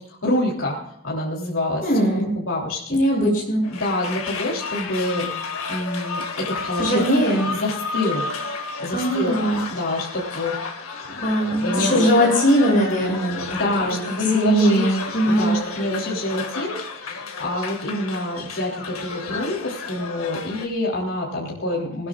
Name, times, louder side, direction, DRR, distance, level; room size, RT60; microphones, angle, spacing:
voice 1, 0.0-1.9 2.1-3.0 3.7-5.3 5.7-7.0 7.4-8.3 8.6-9.4 9.7-10.6 11.1-12.1 13.5-15.0 15.2-22.1, left 2 dB, 65° left, -3 dB, 3.4 m, -27 dB
voice 2, 1.8-2.3 2.9-3.6 6.8-7.5 8.9-9.6 11.2-14.0 14.3-15.5, equal, 40° left, -1 dB, 7.8 m, -20 dB
sound 1, 3.6-20.7, left 4 dB, 85° left, 2.1 m, -32 dB
20.0 x 17.5 x 2.5 m, 0.72 s
head